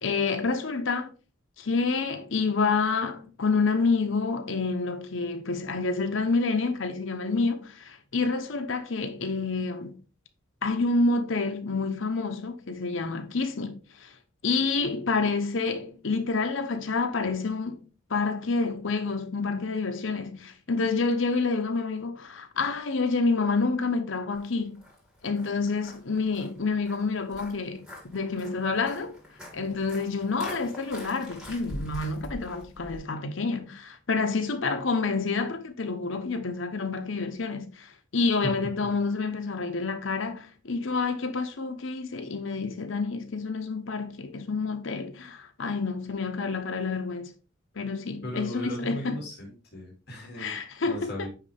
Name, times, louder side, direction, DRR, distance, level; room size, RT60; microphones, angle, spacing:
voice 1, 0.0-1.1 1.6-10.0 10.6-14.1 14.4-17.8 18.1-24.8 25.2-29.1 29.5-47.3 47.8-49.2 50.4-51.3, left 4 dB, 75° left, 0.9 m, -28 dB
Walk footsteps, 24.4-33.0, left 1 dB, 5° right, 2.2 m, -44 dB
voice 2, 48.2-50.6 50.8-51.3, equal, 55° left, 2.4 m, -37 dB
9.4 x 3.3 x 3.4 m
head